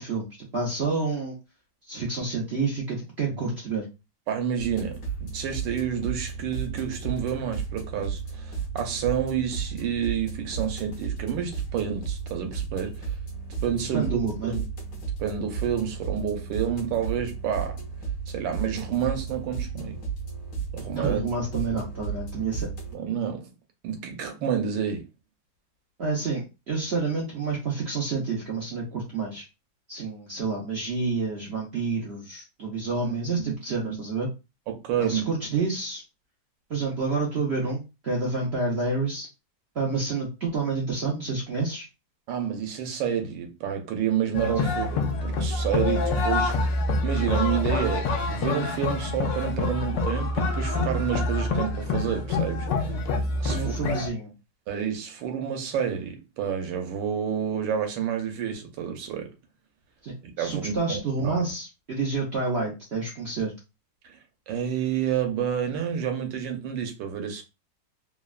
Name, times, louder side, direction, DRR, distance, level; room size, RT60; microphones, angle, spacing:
voice 1, 0.0-1.4 1.9-3.9 13.9-14.5 21.0-22.7 26.0-29.4 29.9-34.3 35.0-36.0 36.7-39.3 39.8-41.9 53.4-54.3 60.0-63.5, right 4 dB, 65° right, 0.6 m, -29 dB
voice 2, 4.3-13.1 13.6-14.1 14.4-14.7 15.2-17.8 18.3-20.0 20.7-21.2 22.9-23.5 23.8-25.1 33.0-33.5 33.8-34.0 34.7-35.3 42.3-54.0 54.7-59.3 60.4-61.4 64.0-64.2 64.5-67.4, right 8 dB, 85° right, 1.4 m, -29 dB
sound 1, 4.6-22.9, right 6 dB, 60° left, 1.2 m, -34 dB
sound 2, 44.3-54.1, left 2 dB, 75° left, 1.2 m, -26 dB
3.4 x 2.1 x 2.3 m
omnidirectional pair, 2.0 m